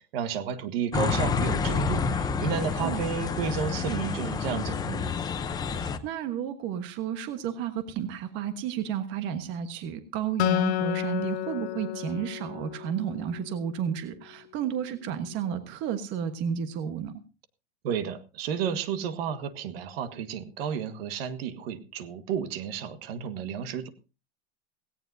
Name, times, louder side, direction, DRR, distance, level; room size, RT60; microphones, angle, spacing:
voice 1, 0.0-5.1 17.8-23.9, right 7 dB, 60° right, 11 dB, 1.7 m, -32 dB
sound 1, 0.9-6.0, left 5 dB, 10° left, 0.7 m, -29 dB
voice 2, 5.7-17.2, right 8 dB, 35° right, 9 dB, 1.3 m, -32 dB
Acoustic guitar, 10.4-13.8, left 20 dB, 70° left, 0.9 m, -31 dB
17.5 x 17.5 x 2.7 m, 0.31 s
supercardioid pair, 160°, 34 cm